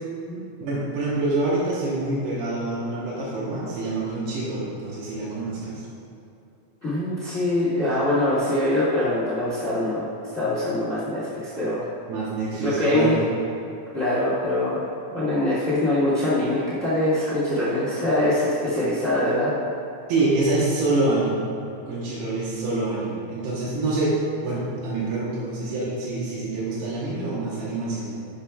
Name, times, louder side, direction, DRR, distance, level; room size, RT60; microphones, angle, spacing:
voice 1, 0.6-5.8 12.1-13.2 20.1-21.5 21.9-24.1 24.4-28.1, right 2 dB, 80° right, -6 dB, 3.1 m, -26 dB
voice 2, 6.8-10.1 10.3-11.9 12.6-13.2 13.9-14.8 15.1-19.5, left 1 dB, 75° left, -10 dB, 0.7 m, -23 dB
11.5 x 7.3 x 2.3 m, 2.7 s
omnidirectional pair, 4.6 m